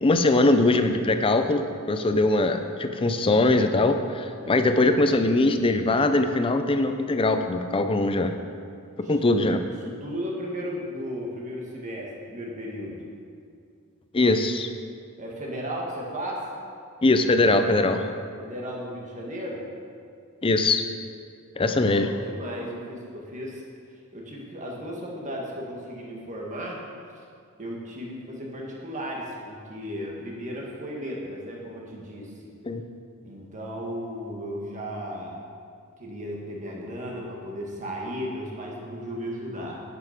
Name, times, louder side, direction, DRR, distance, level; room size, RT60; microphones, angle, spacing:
voice 1, 0.0-8.3 9.1-9.6 14.1-14.7 17.0-18.1 20.4-20.8 21.6-22.1 32.6-32.8, left 2 dB, 25° left, 7 dB, 0.5 m, -21 dB
voice 2, 4.4-4.9 9.0-13.0 15.2-16.4 18.4-19.6 21.5-23.6 24.1-26.8 27.6-32.3 33.2-35.4 36.0-39.8, equal, 35° right, -2 dB, 1.6 m, -35 dB
9.5 x 6.8 x 5.1 m, 2.3 s
head